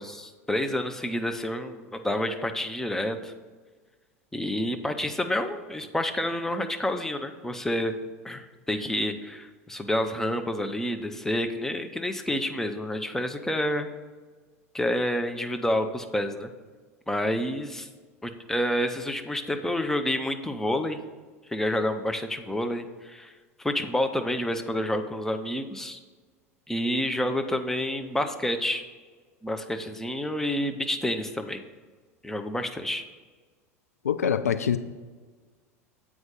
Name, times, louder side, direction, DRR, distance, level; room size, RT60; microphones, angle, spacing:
voice 1, 0.0-3.3 4.3-7.9 8.2-13.9 14.7-16.5 17.1-17.9 18.2-21.0 21.5-23.3 23.6-26.0 26.7-28.8 29.4-31.6 32.2-33.0, left 1 dB, 5° left, 6 dB, 0.6 m, -29 dB
voice 2, 34.0-34.8, left 8 dB, 75° left, 12 dB, 0.4 m, -24 dB
7.9 x 4.8 x 5.5 m, 1.4 s
figure-of-eight pair, 80°, 8 cm